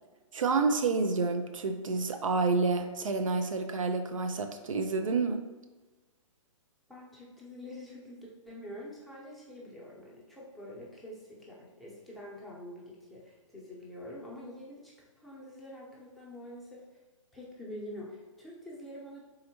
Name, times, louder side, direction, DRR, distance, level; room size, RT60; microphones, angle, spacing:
voice 1, 0.3-5.4, right 4 dB, 75° right, 6 dB, 0.5 m, -29 dB
voice 2, 6.9-17.0 17.3-19.2, left 1 dB, ahead, -6 dB, 0.8 m, -46 dB
4.1 x 3.8 x 2.9 m, 1.2 s
figure-of-eight pair, 125°, 17 cm